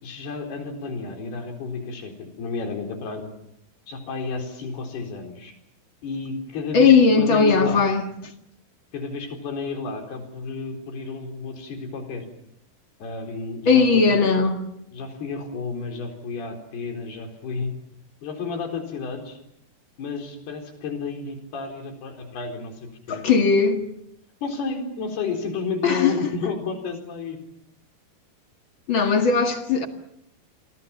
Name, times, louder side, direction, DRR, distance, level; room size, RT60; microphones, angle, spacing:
voice 1, 0.0-3.3 3.9-5.6 6.0-7.9 8.9-12.3 13.0-14.3 14.9-17.8 18.2-19.4 20.0-23.2 24.4-27.4, left 4 dB, 70° left, 6.1 m, -32 dB
voice 2, 6.7-8.0 13.7-14.6 23.1-23.8 25.8-26.2 28.9-29.9, left 5 dB, 40° left, 1.9 m, -18 dB
29.5 x 23.5 x 7.2 m
omnidirectional pair, 4.7 m